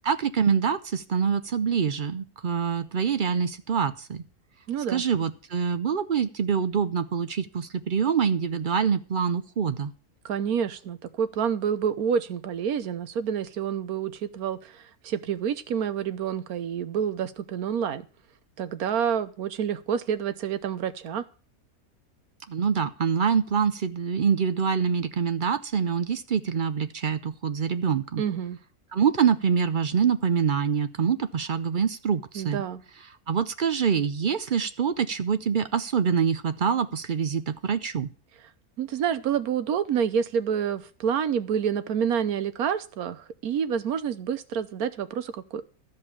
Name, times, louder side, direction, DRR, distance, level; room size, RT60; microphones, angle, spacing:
voice 1, 0.0-4.2 4.9-9.9 22.5-28.2 28.9-32.6 33.3-38.1, right 7 dB, 55° right, 11 dB, 0.5 m, -25 dB
voice 2, 4.7-5.0 10.2-18.1 18.6-21.2 28.2-28.6 32.3-32.8 38.8-45.7, right 8 dB, 75° right, 13 dB, 1.3 m, -28 dB
13.0 x 5.4 x 8.6 m, 0.38 s
omnidirectional pair, 1.6 m